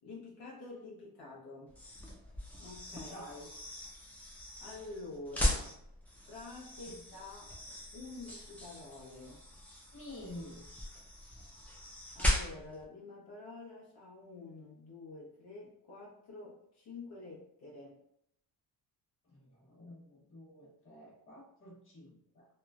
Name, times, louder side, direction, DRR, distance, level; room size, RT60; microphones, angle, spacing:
voice 1, 0.0-1.8 2.6-3.3 4.6-5.8 6.3-7.6 7.9-9.4 12.1-18.0, left 3 dB, 75° left, -5 dB, 0.8 m, -48 dB
sound 1, 1.7-12.8, equal, 5° left, 0.4 m, -38 dB
voice 2, 2.9-3.5 6.9-7.1 9.9-10.7 19.2-22.5, left 1 dB, 30° left, -5 dB, 1.1 m, -50 dB
3.0 x 2.0 x 2.3 m, 0.74 s
cardioid pair, 135°, 40 cm